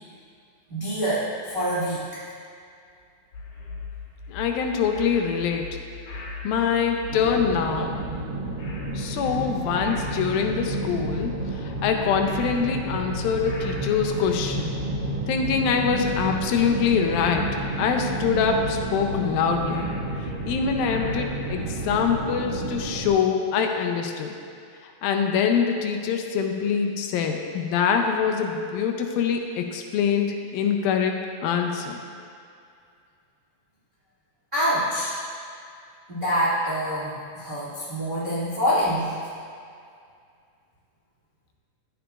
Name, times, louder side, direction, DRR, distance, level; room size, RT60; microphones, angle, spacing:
voice 1, 0.7-2.0 34.5-35.1 36.1-39.2, equal, 65° right, -11 dB, 0.5 m, -25 dB
sound 1, 3.3-22.0, left 3 dB, 65° left, 1.6 m, -39 dB
voice 2, 4.3-5.7 6.4-8.0 8.9-14.7 15.3-17.5 17.8-19.9 20.5-24.3 25.0-31.1 31.4-32.0, left 6 dB, 85° left, 3 dB, 2.4 m, -24 dB
sound 2, 7.1-23.1, right 2 dB, 45° right, 1.9 m, -31 dB
11.5 x 7.6 x 2.4 m, 2.3 s
omnidirectional pair, 4.1 m